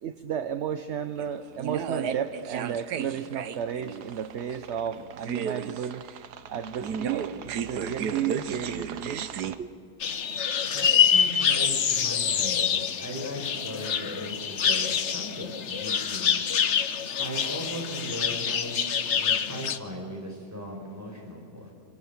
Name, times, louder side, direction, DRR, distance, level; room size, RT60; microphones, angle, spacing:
voice 1, 0.0-6.0 6.5-9.3 9.6-9.7, right 8 dB, 55° right, 11 dB, 0.9 m, -33 dB
sound 1, 1.2-9.6, right 7 dB, 75° right, 1.4 m, -34 dB
sound 2, 10.0-19.8, left 7 dB, 50° left, 1.1 m, -26 dB
voice 2, 10.6-16.4 17.2-21.7, equal, 10° right, -1 dB, 5.9 m, -38 dB
26.5 x 24.5 x 7.4 m, 2.2 s
omnidirectional pair, 1.8 m